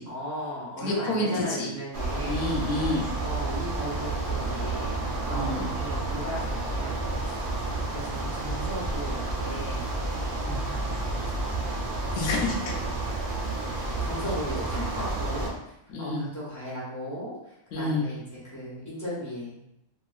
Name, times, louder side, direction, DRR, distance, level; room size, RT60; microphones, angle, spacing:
voice 1, 0.0-2.5 3.2-7.4 7.9-9.9 10.6-10.8 11.2-11.6 13.7-15.6 16.0-19.6, equal, 15° left, -9 dB, 1.0 m, -36 dB
voice 2, 0.8-1.7 2.2-3.1 5.3-5.7 10.4-10.6 12.1-12.8 15.9-16.3 17.7-18.1, left 2 dB, 85° left, 0 dB, 1.1 m, -29 dB
sound 1, 1.9-15.5, right 2 dB, 65° right, 0.5 m, -30 dB
2.9 x 2.5 x 2.3 m, 0.82 s
omnidirectional pair, 1.5 m